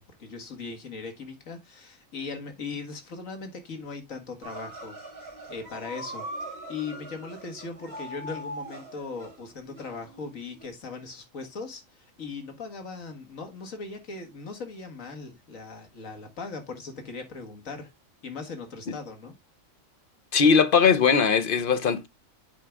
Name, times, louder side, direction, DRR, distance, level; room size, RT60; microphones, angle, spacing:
voice 1, 0.0-5.0 5.5-17.9 18.2-19.3, left 4 dB, 75° left, 2.1 m, -39 dB
sound 1, 4.4-10.7, right 1 dB, 30° right, 3.0 m, -41 dB
voice 2, 20.3-22.1, left 6 dB, 50° left, 0.8 m, -20 dB
8.4 x 4.7 x 3.5 m
omnidirectional pair, 1.4 m